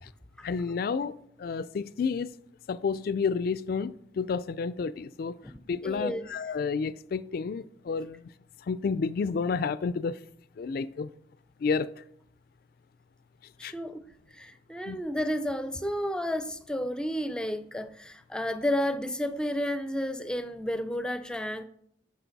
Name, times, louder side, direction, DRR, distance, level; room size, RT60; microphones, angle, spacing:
voice 1, 0.4-2.3 2.7-5.4 5.7-8.3 8.7-10.2 10.6-11.1 11.6-12.0 13.6-13.7 14.9-15.0, left 5 dB, 55° left, 0.3 m, -30 dB
voice 2, 5.4-6.3 13.6-14.0 14.3-21.6, equal, 5° left, 0.5 m, -32 dB
10.0 x 6.5 x 4.0 m
head